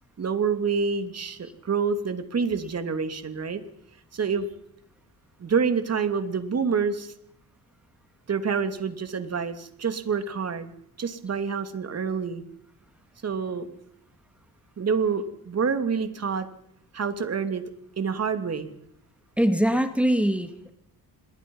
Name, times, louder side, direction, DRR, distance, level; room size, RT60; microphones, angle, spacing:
voice 1, 0.2-3.6 4.1-4.5 5.4-7.1 8.3-10.7 11.0-12.4 13.2-13.7 14.8-16.5 16.9-17.6 18.0-18.7, right 5 dB, 45° right, 8 dB, 2.9 m, -27 dB
voice 2, 19.4-20.7, equal, 5° right, 7 dB, 2.3 m, -23 dB
27.5 x 22.0 x 5.6 m, 0.74 s
cardioid pair, 105°, 36 cm